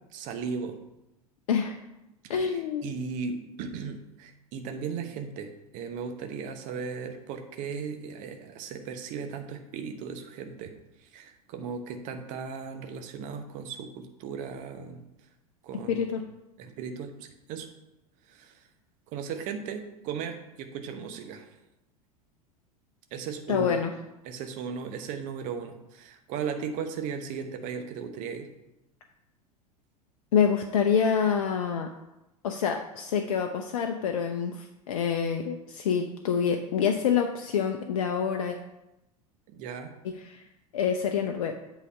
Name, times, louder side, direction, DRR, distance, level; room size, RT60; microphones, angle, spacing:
voice 1, 0.1-0.8 2.2-2.5 2.8-15.0 15.6-16.1 16.6-17.7 18.3-18.6 19.1-21.5 23.1-23.8 24.2-28.5 39.5-39.9, right 6 dB, 40° right, 7 dB, 1.0 m, -37 dB
voice 2, 2.3-2.9 15.9-16.2 23.5-23.9 30.3-31.9 32.4-38.6 40.2-40.4 40.7-41.5, left 7 dB, 60° left, 5 dB, 0.6 m, -26 dB
8.2 x 4.0 x 5.3 m, 0.92 s
figure-of-eight pair, 80°, 19 cm